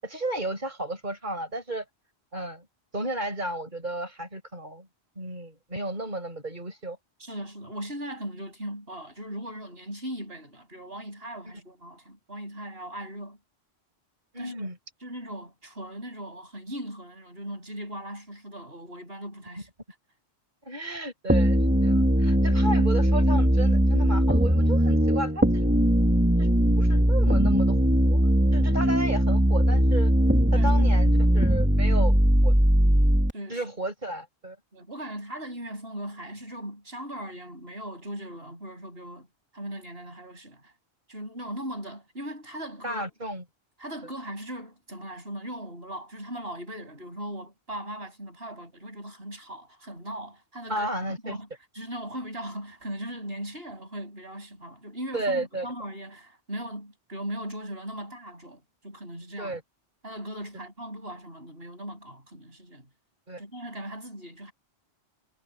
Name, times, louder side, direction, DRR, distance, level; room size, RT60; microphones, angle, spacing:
voice 1, 0.0-1.8 2.3-2.7 2.9-4.9 5.2-7.0 14.3-14.8 20.6-25.7 26.4-28.2 28.5-30.1 30.5-32.2 32.4-32.5 33.5-34.6 42.8-43.4 50.7-51.4 55.1-55.7 59.4-59.6 63.3-63.4, right 1 dB, 45° right, 7.6 m, -33 dB
voice 2, 7.2-13.4 14.4-14.7 15.0-19.7 30.5-31.4 33.3-33.7 34.7-39.3 39.5-40.7 41.1-43.1 43.8-51.5 51.7-59.6 60.0-62.9 63.4-64.5, equal, 65° right, 7.9 m, -39 dB
sound 1, 21.3-33.3, equal, 10° right, 3.0 m, -20 dB
omnidirectional pair, 1.1 m